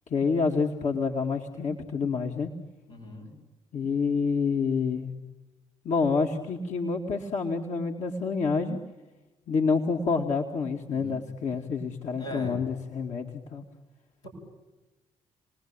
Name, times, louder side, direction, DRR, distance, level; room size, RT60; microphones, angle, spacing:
voice 1, 0.1-2.5 3.7-5.1 5.8-8.8 9.5-13.6, left 5 dB, 55° left, 1 dB, 2.3 m, -28 dB
voice 2, 2.9-3.3 10.9-11.3 12.1-12.6 14.2-14.3, equal, 90° left, -5 dB, 7.9 m, -39 dB
29.0 x 20.0 x 9.0 m, 1.1 s
figure-of-eight pair, 45°, 15 cm